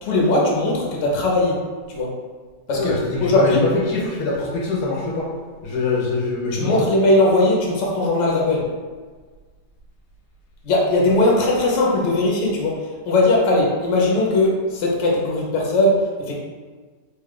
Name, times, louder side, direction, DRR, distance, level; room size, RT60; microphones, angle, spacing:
voice 1, 0.0-1.6 1.9-2.1 2.7-3.6 6.5-8.7 10.6-16.3, left 2 dB, 55° left, -2 dB, 0.9 m, -19 dB
voice 2, 2.8-5.3 5.6-6.8, left 3 dB, 75° left, -4 dB, 1.2 m, -23 dB
3.5 x 2.3 x 3.6 m, 1.5 s
omnidirectional pair, 1.8 m